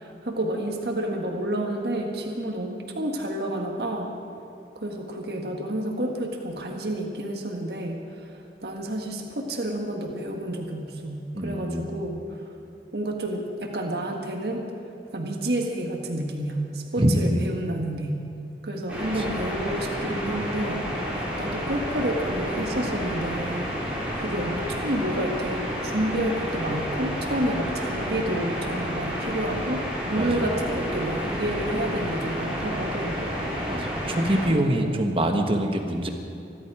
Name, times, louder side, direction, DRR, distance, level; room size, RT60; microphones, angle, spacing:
voice 1, 0.0-4.1 4.8-8.3 8.6-12.2 12.9-14.7 15.1-18.2 18.6-20.8 21.4-23.7 24.2-33.3 34.5-35.1, right 1 dB, 65° right, 2 dB, 1.7 m, -29 dB
voice 2, 11.3-12.0 17.0-17.4 19.3-19.4 30.2-30.5 33.7-36.1, right 1 dB, 30° right, 4 dB, 1.3 m, -25 dB
sound 1, 18.9-34.5, equal, 5° right, 3.7 m, -30 dB
24.5 x 12.0 x 4.9 m, 2.7 s
head